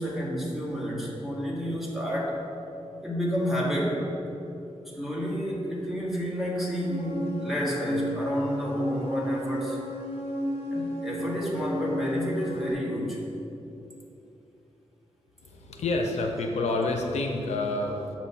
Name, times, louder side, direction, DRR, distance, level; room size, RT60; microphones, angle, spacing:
voice 1, 0.0-2.4 3.0-4.1 4.8-9.8 10.7-13.2, equal, ahead, -4 dB, 1.1 m, -30 dB
sound 1, 6.8-12.7, equal, 60° left, 0.8 m, -32 dB
voice 2, 15.4-18.2, left 2 dB, 85° left, 3 dB, 0.5 m, -28 dB
6.6 x 3.0 x 5.5 m, 2.9 s
wide cardioid pair, 130°, 11 cm